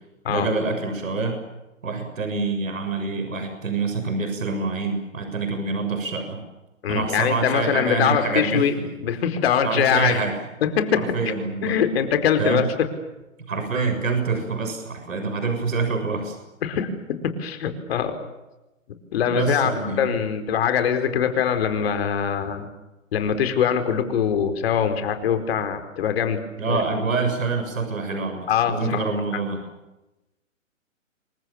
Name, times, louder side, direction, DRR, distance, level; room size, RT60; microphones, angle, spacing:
voice 1, 0.3-1.4 1.8-6.4 6.9-8.7 9.6-10.3 11.0-11.8 12.4-12.7 13.5-16.4 19.3-20.1 26.6-29.6, right 4 dB, 80° right, 6 dB, 7.1 m, -26 dB
voice 2, 6.8-8.8 9.0-10.2 10.6-11.2 11.6-12.9 16.6-18.2 19.1-22.7 23.1-26.8 28.5-29.0, left 8 dB, 50° left, 8 dB, 4.7 m, -23 dB
28.5 x 24.0 x 7.3 m, 0.98 s
hypercardioid pair, 140°, 40 cm